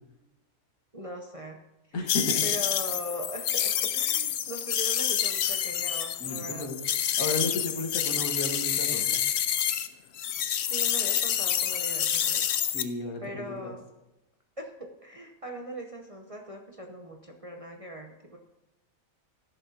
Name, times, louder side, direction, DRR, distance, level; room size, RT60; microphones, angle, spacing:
voice 1, 0.9-1.6 2.4-6.7 10.6-12.5 13.2-13.9 14.6-18.4, equal, 30° right, 1 dB, 0.7 m, -40 dB
voice 2, 1.9-2.5 6.2-6.8 7.2-9.2 12.7-13.7, left 2 dB, 80° left, 2 dB, 1.9 m, -33 dB
sound 1, 2.1-9.9 10.2-12.8, left 9 dB, 60° left, 0.7 m, -28 dB
13.5 x 11.0 x 2.8 m, 0.96 s
omnidirectional pair, 1.5 m